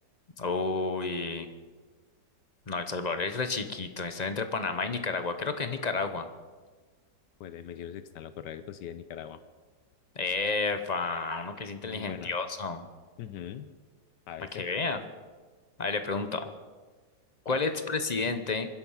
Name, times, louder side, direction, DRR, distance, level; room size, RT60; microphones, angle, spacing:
voice 1, 0.4-1.5 2.7-6.3 10.2-12.8 14.5-15.0 15.8-16.5 17.4-18.7, left 4 dB, 35° left, 9 dB, 0.7 m, -31 dB
voice 2, 7.4-9.4 11.8-12.3 13.2-13.7 14.3-14.6 17.5-17.6, left 10 dB, 75° left, 12 dB, 1.3 m, -41 dB
24.5 x 10.5 x 5.7 m, 1.4 s
omnidirectional pair, 1.9 m